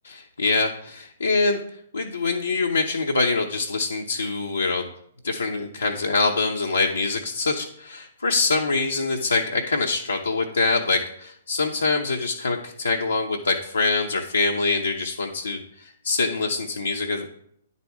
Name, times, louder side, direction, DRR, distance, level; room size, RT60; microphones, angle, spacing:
voice 1, 0.0-1.6 1.9-4.9 5.2-17.3, left 3 dB, 85° left, 1 dB, 0.7 m, -24 dB
9.7 x 4.2 x 4.6 m, 0.71 s
figure-of-eight pair, 125°, 0 cm